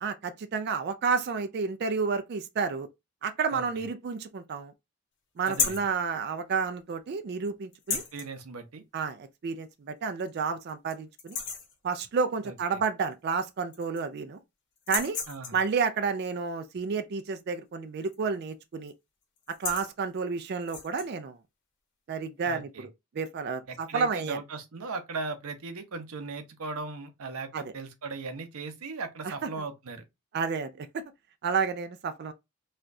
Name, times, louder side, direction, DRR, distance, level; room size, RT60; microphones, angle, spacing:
voice 1, 0.0-2.9 3.2-4.7 5.4-8.0 8.9-11.4 11.8-14.4 14.9-15.2 15.5-18.9 19.5-21.4 22.1-22.9 23.1-24.4 27.5-27.7 29.2-29.5 30.3-31.0 31.4-32.3, right 5 dB, 50° right, 0.3 m, -30 dB
voice 2, 3.5-3.8 5.5-5.9 7.9-8.8 12.4-12.5 15.3-15.6 22.4-22.9 23.7-30.0, right 3 dB, 80° right, 0.7 m, -38 dB
sound 1, 5.4-5.9 7.7-8.3 9.6-9.7 10.2-10.3 10.7-10.9 11.2-11.7 13.1-13.2 13.5-14.2 14.8-15.7 18.0-18.3 18.6-18.9 19.4-19.9 20.6-21.1, left 6 dB, 55° left, 0.9 m, -33 dB
4.2 x 2.3 x 2.5 m
head